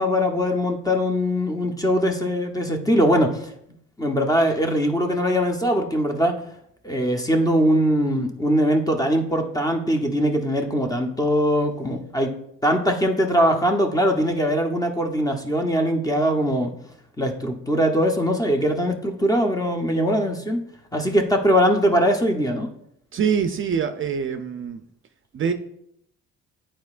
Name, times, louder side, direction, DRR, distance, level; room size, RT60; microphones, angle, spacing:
voice 1, 0.0-3.5 4.0-6.4 6.8-12.3 12.6-16.7 17.2-20.6 20.9-22.7, equal, 10° left, 4 dB, 0.9 m, -21 dB
voice 2, 23.1-24.8 25.3-25.5, right 7 dB, 45° right, 8 dB, 0.5 m, -24 dB
9.2 x 4.3 x 2.5 m, 0.73 s
cardioid pair, 90°, 30 cm